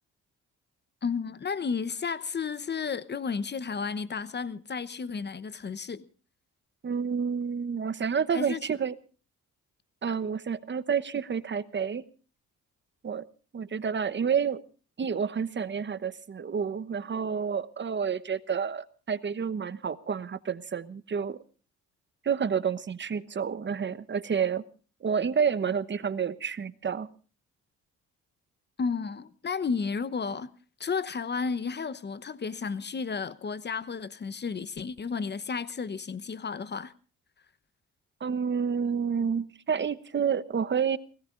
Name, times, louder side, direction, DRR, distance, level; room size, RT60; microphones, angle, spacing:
voice 1, 1.0-6.0 8.3-8.7 28.8-30.5 30.8-36.9, left 5 dB, 35° left, 1.0 m, -32 dB
voice 2, 6.8-8.9 10.0-12.0 13.0-13.3 13.5-14.6 15.0-21.4 22.2-24.6 25.0-27.1 38.2-41.0, right 6 dB, 35° right, 1.1 m, -29 dB
29.5 x 18.0 x 2.6 m
cardioid pair, 90°, 30 cm